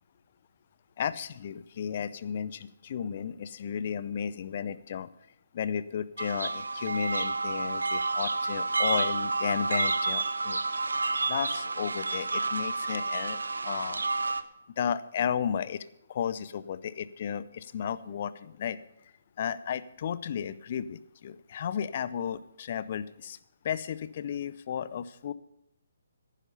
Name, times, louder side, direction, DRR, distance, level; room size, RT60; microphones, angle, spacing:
voice 1, 1.0-5.1 5.5-10.6 11.3-13.4 13.6-14.0 14.8-18.8 19.4-23.4 23.6-25.3, left 8 dB, 45° left, 16 dB, 0.6 m, -33 dB
sound 1, 6.2-14.4, right 3 dB, 75° right, 0.7 m, -30 dB
11.0 x 10.0 x 5.4 m, 0.80 s
figure-of-eight pair, 140°, 0 cm